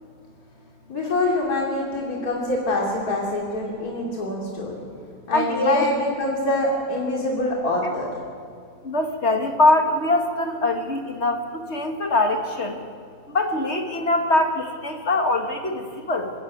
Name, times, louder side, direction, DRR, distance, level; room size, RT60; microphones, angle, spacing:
voice 1, 0.9-4.7 5.3-8.1, left 1 dB, 75° left, -3 dB, 3.3 m, -25 dB
voice 2, 5.3-5.9 8.8-12.8 13.3-16.3, left 2 dB, 45° left, 4 dB, 1.9 m, -22 dB
24.0 x 15.0 x 9.3 m, 2.3 s
omnidirectional pair, 1.6 m